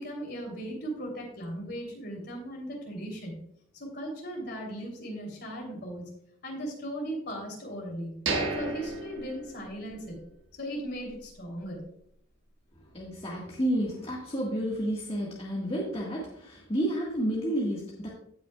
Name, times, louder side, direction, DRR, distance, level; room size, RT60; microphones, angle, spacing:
voice 1, 0.0-3.3 3.7-6.1 6.4-8.1 8.5-10.2 10.6-11.8, equal, 50° left, 0 dB, 3.1 m, -37 dB
sound 1, 8.3-10.2 10.5-10.6 11.1-11.3, right 3 dB, 60° right, 1.6 m, -33 dB
voice 2, 12.7-18.1, right 1 dB, 30° left, -4 dB, 1.6 m, -31 dB
17.0 x 6.1 x 2.3 m, 0.68 s
head